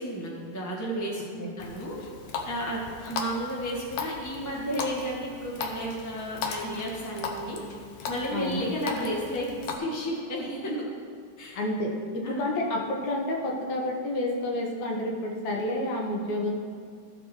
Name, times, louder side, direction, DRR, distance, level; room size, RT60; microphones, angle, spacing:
voice 1, 0.0-2.0 2.4-7.6 8.1-10.8 11.4-11.6 12.2-12.4, equal, 25° left, -4 dB, 0.4 m, -32 dB
Water tap faucet, 1.6-9.8, left 4 dB, 80° left, 1.2 m, -37 dB
voice 2, 8.3-8.7 11.5-16.6, left 1 dB, 65° left, 0 dB, 2.2 m, -29 dB
15.0 x 5.2 x 4.5 m, 2.3 s
omnidirectional pair, 3.7 m